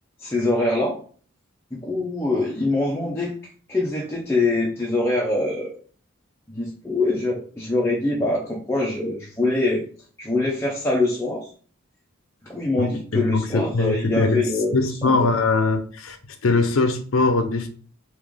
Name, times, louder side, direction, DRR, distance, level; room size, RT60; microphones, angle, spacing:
voice 1, 0.2-1.0 1.7-5.8 6.5-9.8 10.2-11.5 12.4-15.3, left 2 dB, 10° left, -2 dB, 0.6 m, -24 dB
voice 2, 12.8-14.4 14.7-16.2 16.4-17.7, left 3 dB, 70° left, 8 dB, 0.6 m, -21 dB
3.3 x 3.0 x 3.5 m, 0.44 s
head